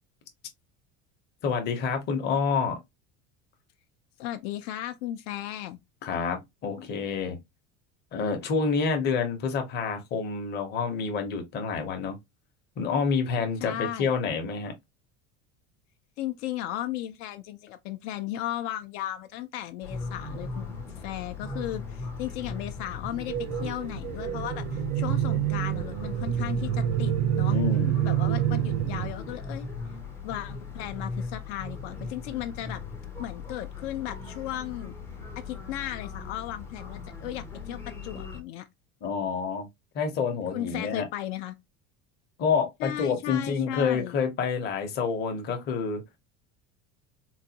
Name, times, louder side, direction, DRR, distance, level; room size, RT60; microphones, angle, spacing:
voice 1, 1.4-2.8 6.0-7.4 8.1-12.2 12.8-14.7 27.5-28.0 39.0-39.7 39.9-41.1 42.4-46.0, left 5 dB, 30° left, 0.7 m, -28 dB
voice 2, 4.2-5.8 13.6-14.1 16.2-27.6 28.0-29.7 30.2-32.8 33.2-34.9 35.4-38.7 40.5-41.5 42.8-44.1, left 13 dB, 75° left, 0.5 m, -35 dB
sound 1, 19.8-38.4, left 4 dB, 10° left, 0.4 m, -38 dB
sound 2, 23.3-29.1, right 12 dB, 90° right, 0.6 m, -27 dB
3.9 x 2.2 x 2.7 m
cardioid pair, 180°, 33 cm